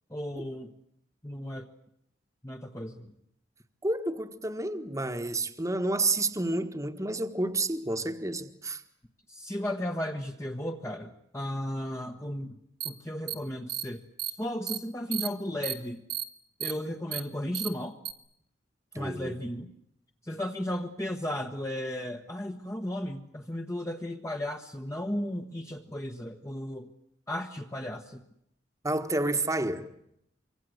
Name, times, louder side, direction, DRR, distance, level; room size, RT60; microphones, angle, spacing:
voice 1, 0.1-0.7 1.2-1.7 2.4-3.1 9.3-12.6 12.8-16.0 16.6-18.0 18.9-19.7 20.2-26.9 27.3-28.2, left 1 dB, 15° left, 1.3 m, -35 dB
voice 2, 3.8-8.8 18.9-19.4 28.8-29.9, right 2 dB, 15° right, 1.5 m, -30 dB
sound 1, 12.8-12.9 13.3-13.4 13.7-13.8 14.2-14.3 14.7-14.8 15.1-15.3 15.6-15.7 16.1-16.2 16.6-16.7 17.1-17.2 17.5-17.7 18.1-18.2, right 11 dB, 50° right, 1.9 m, -32 dB
25.5 x 24.5 x 8.0 m
head